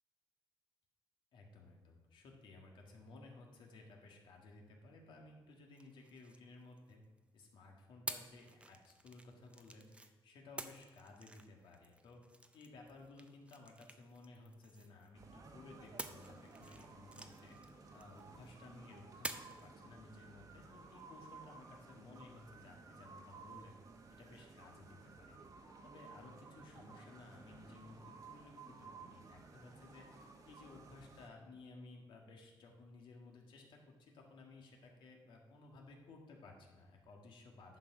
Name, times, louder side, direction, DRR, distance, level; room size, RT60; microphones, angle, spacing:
voice 1, 1.3-7.0 7.3-12.2 12.5-17.6 17.9-23.8 24.2-30.1 30.4-37.8, left 2 dB, 70° left, 1 dB, 1.8 m, -57 dB
sound 1, 5.7-7.2 8.1-10.1 10.6-15.3 16.0-18.5 19.2-19.7, right 2 dB, 15° right, 0.6 m, -50 dB
sound 2, 15.1-31.3, right 4 dB, 45° right, 1.2 m, -56 dB
10.5 x 6.0 x 4.9 m, 1.2 s
cardioid pair, 120°, 9 cm